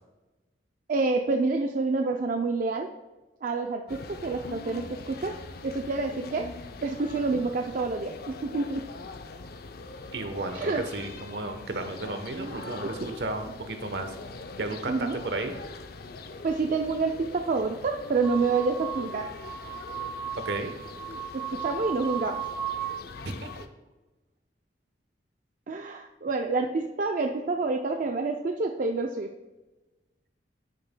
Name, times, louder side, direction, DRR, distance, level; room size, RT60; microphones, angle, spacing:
voice 1, 0.9-2.9 3.4-6.5 6.8-8.9 10.5-10.8 12.3-12.5 12.8-12.9 14.9-15.2 16.4-19.3 21.1-22.4 25.7-29.3, right 3 dB, 50° right, 4 dB, 0.4 m, -28 dB
sound 1, 3.9-23.7, left 3 dB, 60° left, 0.6 m, -43 dB
voice 2, 10.1-14.1 14.6-15.5 20.4-20.7 23.2-23.5, right 2 dB, 70° right, 6 dB, 1.0 m, -33 dB
sound 2, 18.2-23.0, right 7 dB, 25° right, 1.1 m, -36 dB
12.5 x 6.6 x 2.2 m, 1.1 s
head